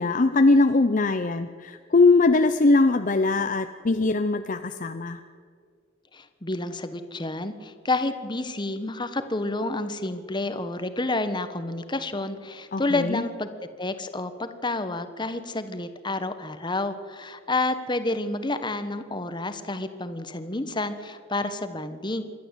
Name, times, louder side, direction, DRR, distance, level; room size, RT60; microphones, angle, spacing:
voice 1, 0.0-5.2 12.7-13.2, left 3 dB, 40° left, 9 dB, 0.6 m, -21 dB
voice 2, 6.1-13.5 13.8-22.2, left 2 dB, 25° left, 10 dB, 1.2 m, -29 dB
27.0 x 12.0 x 8.2 m, 2.1 s
head